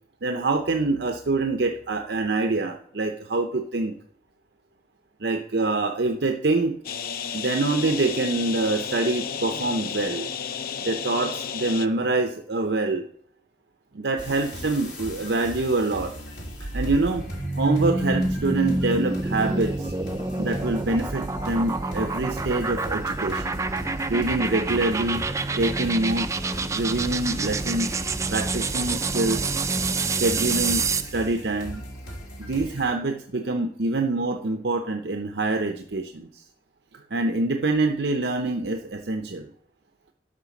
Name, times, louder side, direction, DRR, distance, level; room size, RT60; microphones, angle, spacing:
voice 1, 0.2-3.9 5.2-6.8 7.3-10.3 10.8-13.0 13.9-16.1 16.6-17.2 17.6-19.9 20.4-23.6 24.1-25.2 25.6-26.4 26.7-28.0 28.3-29.5 30.2-31.8 32.5-36.3 37.1-39.5, right 2 dB, 65° right, 5 dB, 0.7 m, -25 dB
sound 1, 6.8-11.9, left 7 dB, 55° left, 0.5 m, -32 dB
sound 2, 14.2-32.9, equal, 75° left, 3.3 m, -39 dB
sound 3, 16.4-31.2, right 3 dB, 15° right, 0.4 m, -27 dB
12.0 x 5.8 x 6.0 m, 0.64 s
head